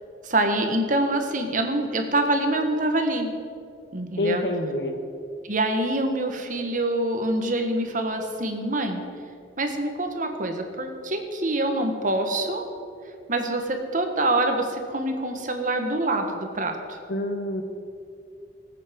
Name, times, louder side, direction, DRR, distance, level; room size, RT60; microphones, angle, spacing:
voice 1, 0.2-3.3 3.9-4.4 5.4-9.0 9.6-12.6 13.3-17.0, right 1 dB, 45° right, 5 dB, 1.4 m, -25 dB
voice 2, 4.2-4.9 17.1-17.6, left 1 dB, 70° left, 5 dB, 1.4 m, -26 dB
20.0 x 8.5 x 5.2 m, 2.4 s
head